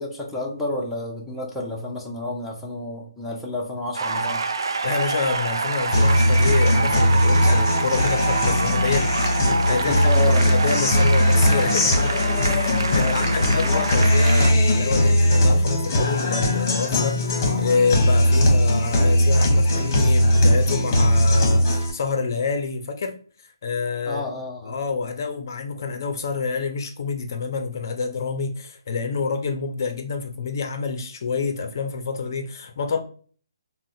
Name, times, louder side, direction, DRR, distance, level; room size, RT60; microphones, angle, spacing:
voice 1, 0.0-4.4 9.9-10.4 12.9-13.8 24.1-24.8, left 2 dB, 5° left, 0.6 m, -30 dB
sound 1, 3.9-14.5, right 4 dB, 80° right, 0.4 m, -26 dB
voice 2, 4.8-9.1 9.7-17.2 17.6-23.2 23.6-24.2 24.6-33.0, left 5 dB, 50° left, 0.5 m, -27 dB
Guitar, 5.9-21.9, left 1 dB, 35° left, 0.9 m, -19 dB
3.8 x 2.0 x 2.6 m
hypercardioid pair, 155°, 2 cm